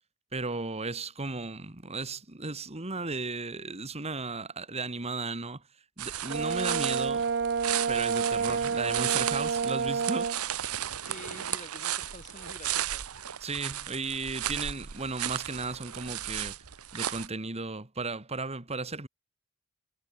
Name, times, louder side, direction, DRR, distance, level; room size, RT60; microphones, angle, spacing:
voice 1, 0.3-5.6 6.0-7.3 7.9-10.4 13.4-16.6 16.9-19.1, right 3 dB, 30° right, 1.9 m, -35 dB
sound 1, 6.0-17.3, right 11 dB, 90° right, 1.1 m, -35 dB
Brass instrument, 6.3-10.4, right 5 dB, 50° right, 0.7 m, -29 dB
voice 2, 11.0-13.0, left 2 dB, 35° left, 4.5 m, -48 dB
head